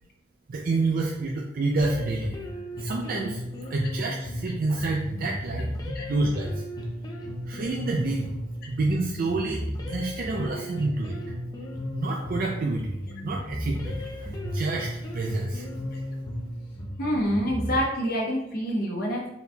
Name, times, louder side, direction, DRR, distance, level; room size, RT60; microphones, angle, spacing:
voice 1, 0.5-2.4 2.8-3.4 3.7-6.7 7.4-8.3 8.7-9.6 9.9-11.2 11.9-15.8, right 2 dB, 50° right, 0 dB, 0.4 m, -28 dB
sound 1, 1.8-17.8, equal, 20° left, 0.6 m, -35 dB
voice 2, 17.0-19.3, equal, 55° left, -2 dB, 1.0 m, -27 dB
4.0 x 3.9 x 2.3 m, 0.84 s
head